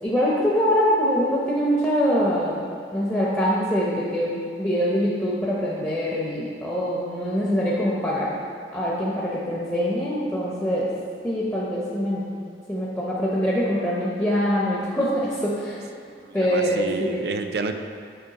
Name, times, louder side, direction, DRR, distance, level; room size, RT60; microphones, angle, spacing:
voice 1, 0.0-8.4 8.7-10.9 11.2-12.3 12.7-15.8 16.3-17.2, equal, 10° left, -7 dB, 0.7 m, -24 dB
voice 2, 16.2-17.7, right 4 dB, 65° right, 7 dB, 0.5 m, -30 dB
8.1 x 5.4 x 4.1 m, 2.2 s
head